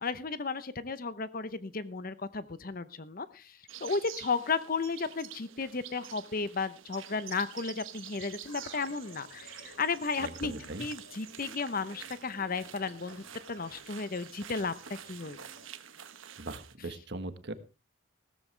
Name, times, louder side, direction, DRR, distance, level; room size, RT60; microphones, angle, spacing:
voice 1, 0.0-13.2 13.5-14.7 15.1-15.4, left 4 dB, 45° left, 14 dB, 0.8 m, -34 dB
sound 1, 3.7-16.7, right 10 dB, 70° right, 1.1 m, -48 dB
sound 2, 8.4-15.7, left 2 dB, 70° left, 3.3 m, -56 dB
voice 2, 10.2-10.9 16.4-17.5, right 2 dB, 55° right, 10 dB, 1.4 m, -40 dB
16.0 x 13.5 x 3.3 m, 0.30 s
head